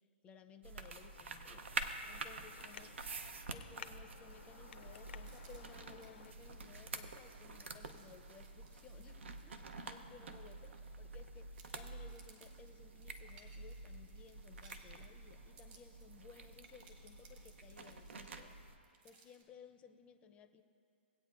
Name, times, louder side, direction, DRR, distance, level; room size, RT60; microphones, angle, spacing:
voice 1, 0.2-1.7 2.1-3.0 3.5-10.6 11.0-18.6 19.0-20.6, left 6 dB, 20° left, 8 dB, 0.5 m, -59 dB
sound 1, 0.6-18.8, right 3 dB, 85° right, 0.7 m, -48 dB
Traffic noise roadway noise, 1.0-6.3, left 8 dB, 70° left, 0.5 m, -57 dB
sound 2, 2.5-2.9 3.2-3.3 3.7-11.2 11.5-19.4, right 4 dB, 45° right, 1.6 m, -66 dB
19.0 x 8.6 x 2.5 m, 2.6 s
hypercardioid pair, 140°, 6 cm